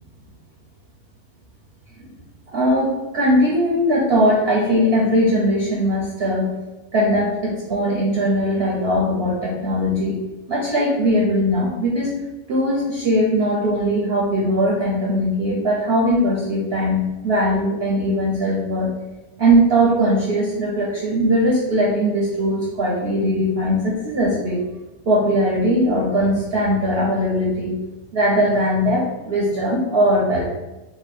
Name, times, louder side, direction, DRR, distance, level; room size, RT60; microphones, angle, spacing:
voice 1, 2.5-6.5 6.9-10.2 10.5-12.1 12.5-18.9 19.4-24.6 25.1-27.7 28.1-30.4, equal, 50° right, -4 dB, 0.9 m, -20 dB
3.0 x 2.8 x 4.2 m, 1.1 s
omnidirectional pair, 1.5 m